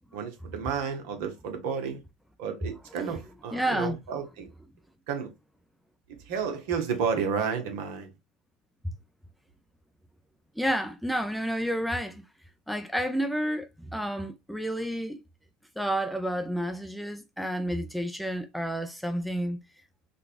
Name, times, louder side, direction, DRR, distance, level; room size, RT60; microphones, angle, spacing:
voice 1, 0.1-2.0 2.4-4.5 5.1-5.3 6.1-8.1, right 6 dB, 70° right, 0.9 m, -31 dB
voice 2, 3.5-4.0 8.8-8.9 10.6-12.2 12.7-15.2 15.8-19.6, equal, ahead, 0.5 m, -30 dB
3.9 x 2.3 x 2.5 m
hypercardioid pair, 80°, 0 cm